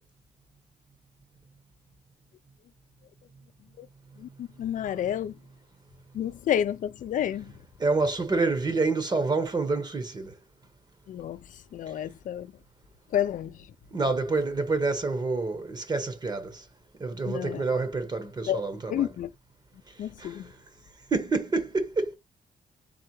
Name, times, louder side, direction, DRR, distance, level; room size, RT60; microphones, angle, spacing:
voice 1, 4.2-5.3 6.1-7.5 11.1-11.4 11.7-12.5 13.1-13.5 17.3-17.6 18.5-18.6 18.9-19.3 20.0-20.5, left 10 dB, 70° left, 0.4 m, -29 dB
voice 2, 7.8-10.3 13.9-16.6 17.0-19.1 20.2-20.4 21.1-22.2, right 3 dB, 30° right, 1.1 m, -27 dB
4.2 x 3.3 x 3.0 m
cardioid pair, 120°, 14 cm